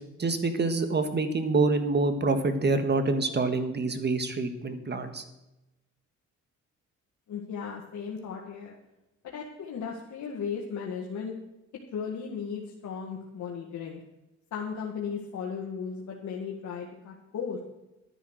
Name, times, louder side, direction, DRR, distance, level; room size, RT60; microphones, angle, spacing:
voice 1, 0.2-5.2, right 3 dB, 35° right, 9 dB, 1.7 m, -26 dB
voice 2, 7.3-8.7 9.2-11.4 11.9-14.0 14.5-17.6, left 6 dB, 70° left, -1 dB, 1.9 m, -36 dB
12.0 x 10.0 x 6.4 m, 0.96 s
cardioid pair, 90°, 30 cm